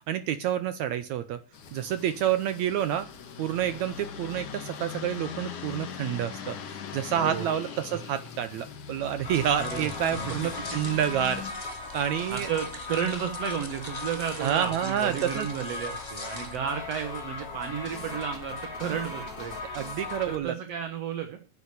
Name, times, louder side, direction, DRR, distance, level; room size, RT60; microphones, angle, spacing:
voice 1, 0.0-1.4 1.7-3.1 3.4-11.4 11.9-12.5 14.4-15.5 19.7-20.5, right 10 dB, 80° right, 12 dB, 1.6 m, -28 dB
sound 1, 1.5-11.5, left 7 dB, 60° left, 3.2 m, -41 dB
voice 2, 7.2-7.5 9.6-9.9 10.2-10.7 12.3-19.5 20.3-21.4, right 8 dB, 55° right, 7 dB, 2.0 m, -33 dB
sound 2, 9.2-20.4, left 3 dB, 40° left, 3.8 m, -38 dB
sound 3, 9.3-16.6, left 1 dB, 15° left, 1.0 m, -45 dB
10.5 x 9.8 x 8.3 m, 0.37 s
omnidirectional pair, 4.2 m